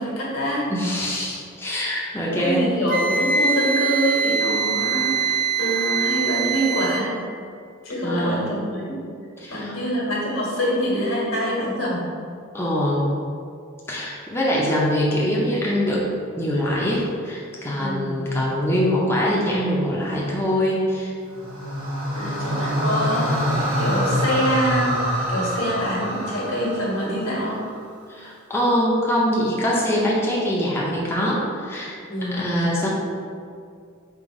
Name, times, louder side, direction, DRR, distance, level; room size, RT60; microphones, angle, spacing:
voice 1, 0.0-0.7 2.3-7.2 7.8-9.0 9.5-12.0 17.8-18.2 22.1-27.6 32.1-32.5, equal, 80° left, -5 dB, 1.4 m, -25 dB
voice 2, 0.7-2.7 8.0-8.5 9.4-9.8 12.5-13.1 13.9-16.1 16.4-21.1 28.1-32.0 32.3-32.9, equal, 10° left, -5 dB, 0.5 m, -23 dB
Wind instrument woodwind instrument, 2.9-7.1, right 5 dB, 40° right, 0.3 m, -23 dB
sound 1, 21.3-27.6, equal, 75° right, 1.2 m, -25 dB
4.0 x 2.8 x 4.7 m, 2.3 s
head